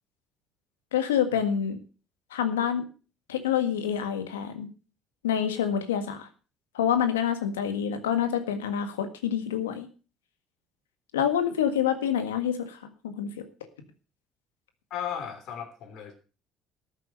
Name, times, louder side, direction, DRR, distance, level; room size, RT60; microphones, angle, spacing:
voice 1, 0.9-1.8 2.3-2.9 3.3-4.7 5.2-6.3 6.7-9.9 11.1-12.8 13.0-13.4, left 9 dB, 90° left, 9 dB, 1.7 m, -27 dB
voice 2, 14.9-16.1, left 8 dB, 65° left, 4 dB, 3.3 m, -35 dB
13.5 x 7.6 x 6.5 m, 0.36 s
hypercardioid pair, 60°, 0 cm